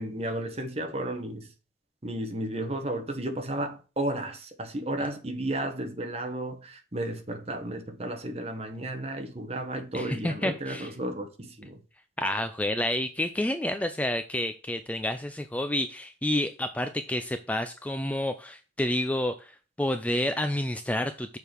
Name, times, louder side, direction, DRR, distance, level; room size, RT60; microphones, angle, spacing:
voice 1, 0.0-1.5 2.0-11.8, right 1 dB, 35° right, 1.2 m, -33 dB
voice 2, 9.9-10.9 12.2-19.5 19.8-21.4, left 1 dB, 10° left, 0.4 m, -29 dB
6.6 x 5.2 x 4.6 m
head